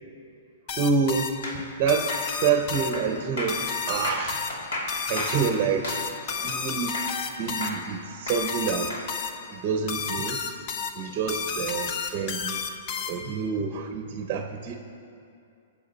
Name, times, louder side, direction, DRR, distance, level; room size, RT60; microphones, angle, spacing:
sound 1, 0.7-13.4, left 6 dB, 35° left, 0.7 m, -32 dB
voice 1, 0.7-1.3 1.8-4.4 5.1-6.0 6.4-7.0 7.4-8.9 9.5-10.4 10.9-12.6 13.1-14.7, right 6 dB, 30° right, 5 dB, 0.8 m, -27 dB
sound 2, 1.4-7.3 7.6-9.1, left 1 dB, 75° left, 2.5 m, -34 dB
19.0 x 7.3 x 4.2 m, 2.6 s
hypercardioid pair, 160°, 0 cm